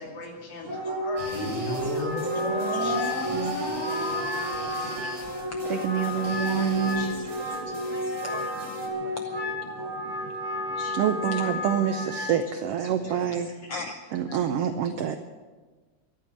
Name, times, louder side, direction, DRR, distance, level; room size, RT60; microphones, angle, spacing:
voice 1, 0.0-2.1, left 1 dB, 70° left, 0 dB, 3.9 m, -39 dB
Wind instrument woodwind instrument, 0.6-12.3, left 1 dB, 30° right, 4.4 m, -32 dB
sound 1, 1.2-7.7, left 2 dB, 55° left, 7.6 m, -33 dB
sound 2, 1.2-8.9, right 2 dB, 10° right, 2.2 m, -41 dB
voice 2, 1.6-3.3 4.0-11.0 11.3-11.5 12.0-12.2 12.8-14.4 14.8-15.2, left 4 dB, 90° left, 5 dB, 1.2 m, -44 dB
voice 3, 5.6-7.1 8.3-8.4 9.0-9.2 9.8-9.9 11.0-13.5 14.1-15.2, right 9 dB, 80° right, 8 dB, 1.3 m, -27 dB
14.0 x 11.0 x 7.5 m, 1.3 s
omnidirectional pair, 3.6 m